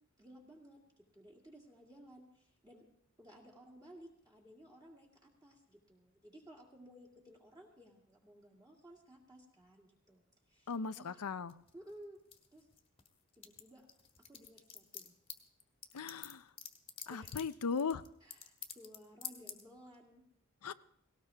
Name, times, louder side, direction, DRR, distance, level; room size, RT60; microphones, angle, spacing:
voice 1, 0.2-2.9 3.2-10.2 10.5-11.2 11.7-12.2 12.5-12.7 13.4-13.9 14.3-15.2 17.1-17.3 18.2-20.2, equal, 15° right, -2 dB, 2.3 m, -57 dB
voice 2, 10.7-11.5 15.9-16.4 17.1-18.0 20.6-20.7, left 5 dB, 90° left, 13 dB, 0.6 m, -37 dB
sound 1, 11.5-13.1 13.3-19.0 19.2-19.6, left 8 dB, 25° left, 1.5 m, -47 dB
18.5 x 18.0 x 3.5 m, 0.69 s
head